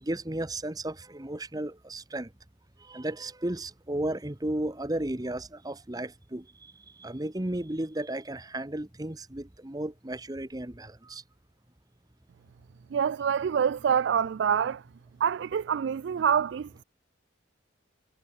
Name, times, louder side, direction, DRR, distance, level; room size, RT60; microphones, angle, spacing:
voice 1, 0.0-2.3 2.8-11.2, right 1 dB, 20° right, 1.0 m, -34 dB
voice 2, 12.9-14.8 15.2-16.8, right 7 dB, 60° right, 0.3 m, -26 dB
head